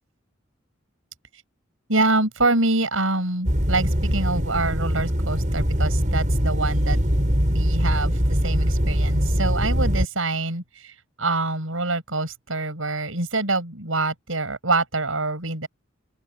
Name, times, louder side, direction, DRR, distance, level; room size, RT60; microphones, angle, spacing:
voice 1, 1.9-7.0 7.5-15.7, right 2 dB, 80° right, 6.0 m, -25 dB
sound 1, 3.4-10.0, equal, 40° right, 6.8 m, -22 dB
open air
head